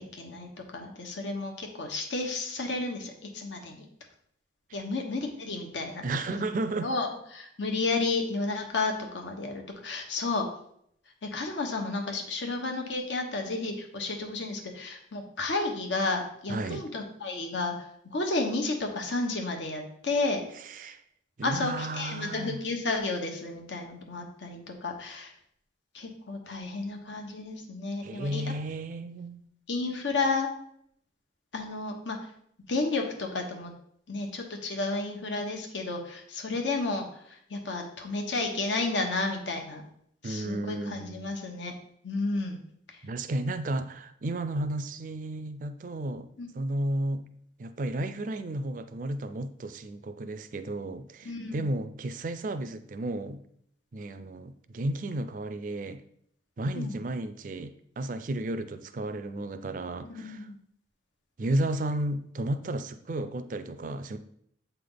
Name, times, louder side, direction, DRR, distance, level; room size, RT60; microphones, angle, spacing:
voice 1, 0.0-3.8 4.7-6.4 6.8-7.1 7.3-10.4 11.2-17.7 18.1-20.4 21.4-25.3 25.9-28.4 29.7-30.5 31.5-32.2 32.7-33.7 34.1-37.1 37.5-39.8 40.2-41.7 42.0-42.6 46.4-46.5 51.2-51.6 56.7-56.9 60.0-60.6, left 3 dB, 85° left, 3 dB, 1.1 m, -32 dB
voice 2, 6.0-6.9 16.5-16.8 20.5-21.0 21.4-22.6 28.0-29.4 40.2-41.3 43.0-46.3 46.5-47.3 47.6-53.4 53.9-56.0 56.6-60.5 61.4-64.2, right 1 dB, 45° right, 10 dB, 0.4 m, -33 dB
7.9 x 3.4 x 3.9 m, 0.69 s
head